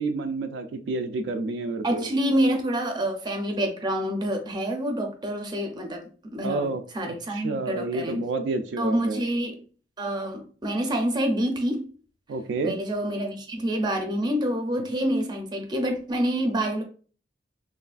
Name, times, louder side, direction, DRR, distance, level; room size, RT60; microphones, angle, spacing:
voice 1, 0.0-2.1 6.4-6.8 7.1-9.2 12.3-12.8, right 3 dB, 80° right, 0.3 m, -29 dB
voice 2, 1.8-8.2 8.8-9.6 10.0-11.9 12.6-16.8, right 1 dB, 25° right, 0.5 m, -27 dB
3.1 x 2.4 x 2.3 m
head